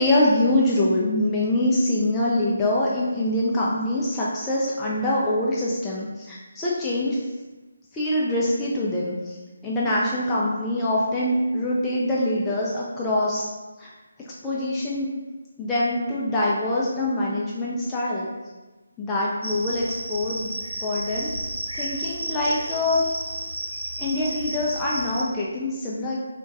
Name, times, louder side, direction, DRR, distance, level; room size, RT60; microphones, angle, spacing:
voice 1, 0.0-7.2 7.9-9.4 9.6-13.4 13.8-13.9 14.4-15.1 15.6-18.3 19.0-19.8 20.1-21.3 21.7-23.1 24.0-26.2, left 1 dB, 10° left, -6 dB, 0.4 m, -24 dB
Cricket, 19.4-25.2, right 1 dB, 75° right, 0.7 m, -32 dB
3.8 x 2.2 x 3.6 m, 1.2 s
figure-of-eight pair, 150°, 0 cm